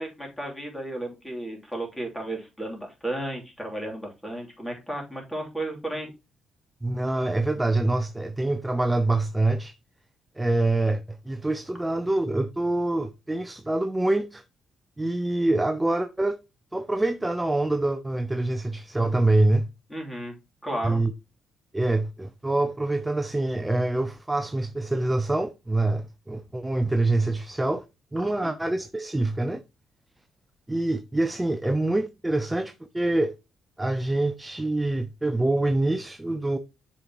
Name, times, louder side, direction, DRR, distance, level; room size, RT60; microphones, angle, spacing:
voice 1, 0.0-6.1 19.9-20.3 20.6-21.0 28.4-28.5, right 1 dB, 10° left, 3.1 m, -33 dB
voice 2, 6.8-9.7 10.4-14.4 15.0-16.4 16.7-19.7 20.8-21.1 21.7-27.8 28.1-29.6 30.7-33.4 33.8-36.6, right 2 dB, 10° right, 0.6 m, -25 dB
7.1 x 5.4 x 3.0 m
cardioid pair, 90°, 0 cm